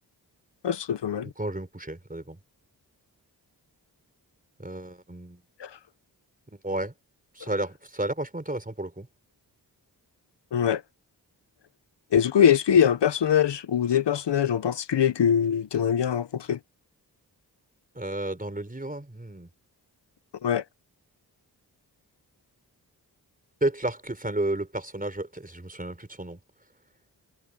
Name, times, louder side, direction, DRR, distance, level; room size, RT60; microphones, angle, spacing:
voice 1, 0.6-1.3 5.6-5.7 10.5-10.8 12.1-16.6 20.4-20.6, left 8 dB, 75° left, 1.1 m, -23 dB
voice 2, 1.4-2.4 4.6-5.4 6.5-6.9 7.3-9.1 17.9-19.5 23.6-26.4, right 1 dB, 20° right, 4.7 m, -32 dB
cardioid pair, 45°, 42 cm